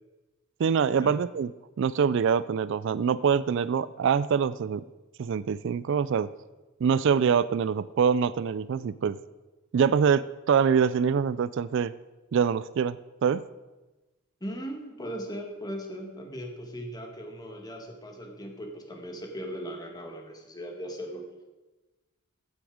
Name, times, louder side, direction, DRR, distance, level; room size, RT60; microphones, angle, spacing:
voice 1, 0.6-1.5 1.8-4.8 5.2-6.3 6.8-9.2 9.7-11.9 12.3-13.4, right 6 dB, 60° right, 17 dB, 0.3 m, -24 dB
voice 2, 14.4-21.3, equal, 20° left, 2 dB, 1.9 m, -38 dB
15.0 x 9.5 x 5.0 m, 1.1 s
head